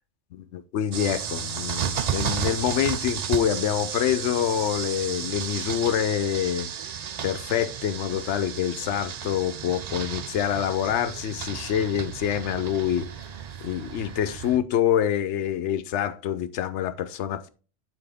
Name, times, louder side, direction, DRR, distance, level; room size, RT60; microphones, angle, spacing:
voice 1, 0.5-6.7 7.2-13.1 13.6-17.5, left 10 dB, 90° left, 0.9 m, -26 dB
sound 1, 0.9-14.6, right 8 dB, 55° right, 0.4 m, -33 dB
9.0 x 4.3 x 3.5 m
omnidirectional pair, 1.2 m